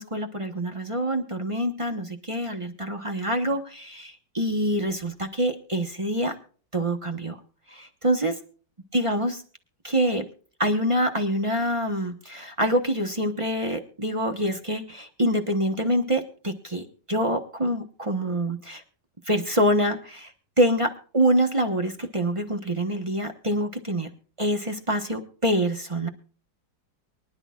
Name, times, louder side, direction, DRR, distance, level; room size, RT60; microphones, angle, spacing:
voice 1, 0.0-6.3 6.7-7.4 7.7-8.4 8.9-9.4 9.8-10.3 10.6-18.8 19.3-20.3 20.6-24.1 24.4-26.1, equal, 20° right, 6 dB, 0.9 m, -26 dB
23.5 x 11.0 x 2.4 m, 0.41 s
omnidirectional pair, 2.0 m